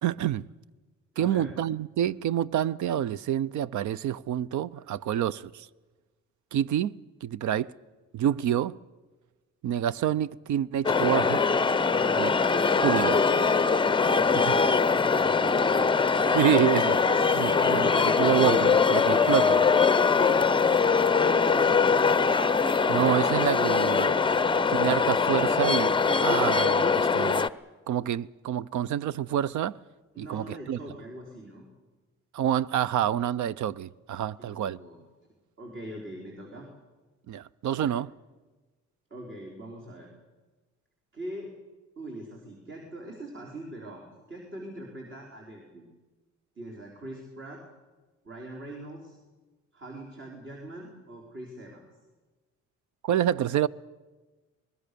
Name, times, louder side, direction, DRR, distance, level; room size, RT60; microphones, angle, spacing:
voice 1, 0.0-0.5 1.2-5.7 6.5-7.7 8.1-8.8 9.6-11.4 12.2-12.3 12.8-13.2 16.3-19.6 22.9-24.2 24.7-25.9 26.2-27.5 27.9-29.8 30.2-30.8 32.3-34.8 37.3-38.1 53.0-53.7, right 10 dB, 70° right, 0.6 m, -27 dB
voice 2, 1.2-1.5 11.8-13.2 14.1-15.9 17.4-18.1 20.0-22.0 30.1-31.6 34.4-35.0 35.6-36.7 37.7-37.9 39.1-40.1 41.1-41.5 42.0-45.9 46.6-47.6 48.2-49.2 49.7-51.8, right 1 dB, 40° right, 4.4 m, -42 dB
sound 1, 10.8-27.5, left 5 dB, 15° left, 0.6 m, -22 dB
24.5 x 20.5 x 6.9 m
cardioid pair, 90°, 30 cm